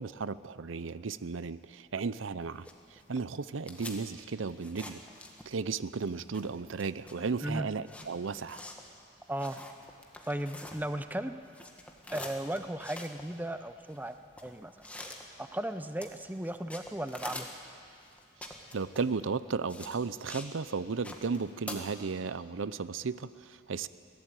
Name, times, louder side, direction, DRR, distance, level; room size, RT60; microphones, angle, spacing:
voice 1, 0.0-5.0 5.5-8.6 18.7-23.9, right 4 dB, 80° right, 15 dB, 0.6 m, -35 dB
sound 1, 2.4-5.7 6.0-11.2 11.4-20.5 20.8-21.8, left 1 dB, 5° left, 1.6 m, -46 dB
voice 2, 10.2-11.3 12.1-14.9 15.4-17.5, right 1 dB, 10° right, 10 dB, 0.6 m, -36 dB
22.5 x 16.5 x 9.1 m, 2.4 s
head